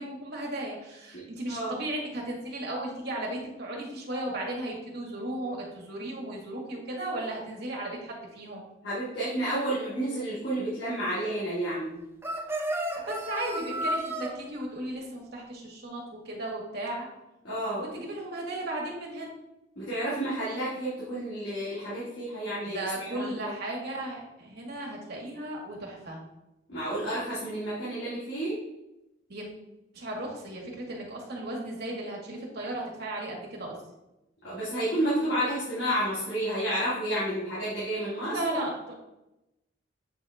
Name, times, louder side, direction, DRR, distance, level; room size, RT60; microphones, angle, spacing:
voice 1, 0.0-8.7 12.9-17.1 17.7-19.3 22.6-26.2 29.3-29.5 29.9-33.8 38.3-38.9, right 1 dB, 55° right, -2 dB, 1.7 m, -35 dB
voice 2, 8.8-12.0 17.4-17.9 19.8-23.5 26.7-28.6 34.4-38.4, right 1 dB, 65° left, -10 dB, 2.3 m, -30 dB
sound 1, 12.2-14.3, right 1 dB, 10° right, 0.6 m, -32 dB
8.0 x 4.0 x 3.4 m, 0.93 s
head